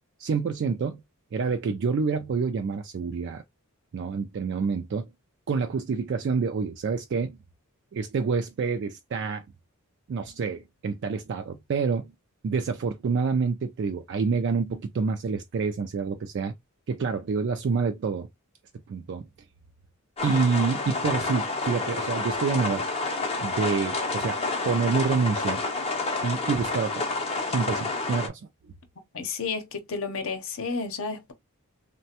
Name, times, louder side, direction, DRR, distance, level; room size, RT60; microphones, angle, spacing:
voice 1, 0.2-1.0 1.3-3.4 3.9-5.1 5.5-7.4 7.9-9.4 10.1-12.1 12.4-16.5 16.9-18.3 18.9-19.3 20.2-22.8 23.4-25.6 26.2-27.0 27.5-28.4, right 5 dB, 50° right, 0.3 m, -27 dB
sound 1, 20.2-28.3, left 3 dB, 25° left, 0.5 m, -29 dB
voice 2, 29.1-31.3, left 4 dB, 65° left, 0.7 m, -31 dB
3.3 x 2.1 x 2.7 m
head